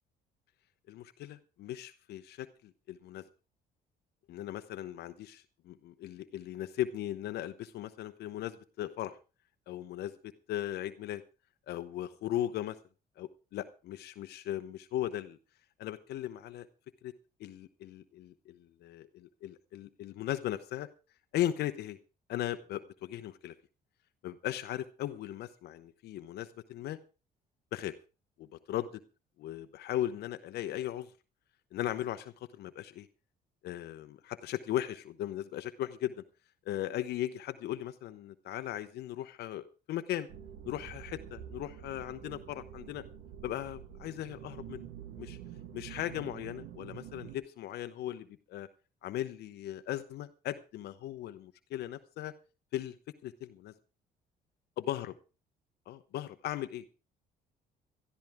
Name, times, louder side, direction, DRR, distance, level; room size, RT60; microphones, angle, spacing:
voice 1, 0.9-2.5 2.9-3.2 4.3-9.2 9.7-11.2 11.7-12.8 13.2-15.4 15.8-16.7 17.0-17.1 17.4-20.9 21.3-22.0 22.3-23.5 24.2-27.0 27.7-27.9 28.4-29.0 29.4-31.1 31.7-33.1 33.6-36.1 36.7-40.3 40.6-43.0 43.4-44.9 45.2-45.4 45.7-48.7 49.0-52.3 52.7-53.0 53.2-53.7 54.8-55.1 55.9-56.8, left 12 dB, 70° left, 10 dB, 0.9 m, -37 dB
sound 1, 40.3-47.4, right 9 dB, 80° right, 1.9 m, -47 dB
18.5 x 12.5 x 3.5 m, 0.32 s
cardioid pair, 110°, 17 cm